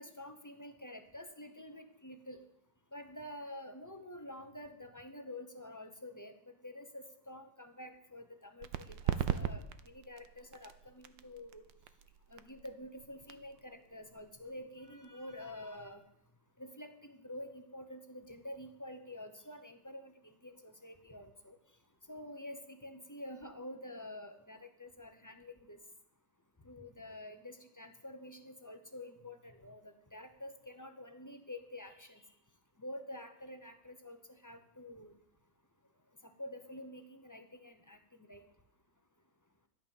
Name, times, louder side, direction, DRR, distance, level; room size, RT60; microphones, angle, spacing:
voice 1, 0.0-2.4 2.9-11.6 12.3-16.0 16.6-21.6 22.1-25.8 26.6-32.2 32.8-35.2 36.2-38.4, left 1 dB, 15° left, 7 dB, 0.8 m, -48 dB
sound 1, 8.6-15.9, right 10 dB, 75° right, 1.5 m, -40 dB
13.0 x 10.5 x 7.3 m, 0.75 s
omnidirectional pair, 2.1 m